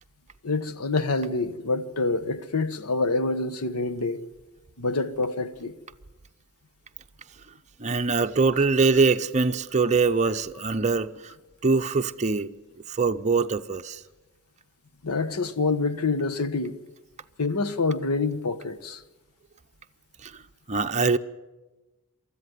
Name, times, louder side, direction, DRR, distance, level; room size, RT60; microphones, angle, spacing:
voice 1, 0.4-4.2 4.8-5.7 15.0-16.7 17.4-19.0, left 3 dB, 75° left, 1.1 m, -26 dB
voice 2, 7.8-11.1 11.6-12.5 12.9-14.0 20.2-20.3 20.7-21.2, right 4 dB, 30° right, 0.7 m, -23 dB
24.0 x 14.0 x 9.4 m
head